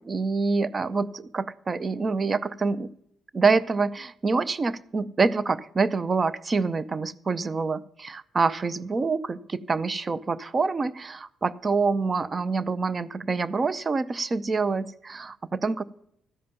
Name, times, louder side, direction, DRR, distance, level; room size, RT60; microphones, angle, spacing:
voice 1, 0.0-2.9 3.3-15.8, right 4 dB, 35° right, 17 dB, 0.5 m, -26 dB
13.0 x 5.1 x 7.0 m, 0.74 s
cardioid pair, 90°, 0 cm